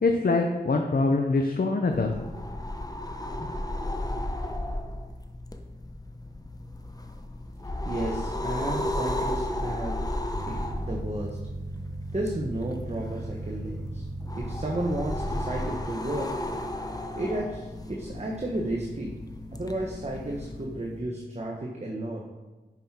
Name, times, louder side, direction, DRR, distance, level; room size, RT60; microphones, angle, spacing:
voice 1, 0.0-2.3, left 3 dB, 55° left, 3 dB, 0.9 m, -24 dB
sound 1, 1.9-20.6, left 1 dB, 20° left, 1.0 m, -34 dB
voice 2, 7.8-10.0 10.4-11.4 12.1-14.0 14.4-16.3 17.1-19.1 19.5-22.2, right 1 dB, 40° right, -1 dB, 1.4 m, -33 dB
sound 2, 10.3-21.0, right 1 dB, 75° right, 1.6 m, -39 dB
10.5 x 5.7 x 4.5 m, 1.2 s
cardioid pair, 40°, 18 cm